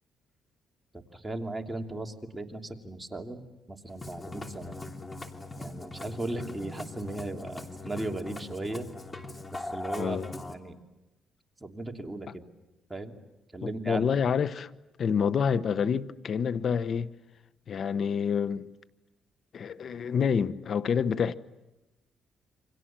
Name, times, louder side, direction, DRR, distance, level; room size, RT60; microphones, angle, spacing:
voice 1, 0.9-4.8 5.6-8.9 9.5-10.2 10.5-10.8 11.6-12.4 12.9-13.2 13.5-14.0, right 2 dB, 15° right, 3.0 m, -37 dB
Musical instrument, 3.9-10.6, left 2 dB, 20° left, 3.1 m, -41 dB
voice 2, 10.0-10.3 13.6-14.7 15.0-17.1 17.7-18.7 19.5-21.3, left 7 dB, 55° left, 1.1 m, -28 dB
29.0 x 25.5 x 7.6 m
cardioid pair, 90°, 0 cm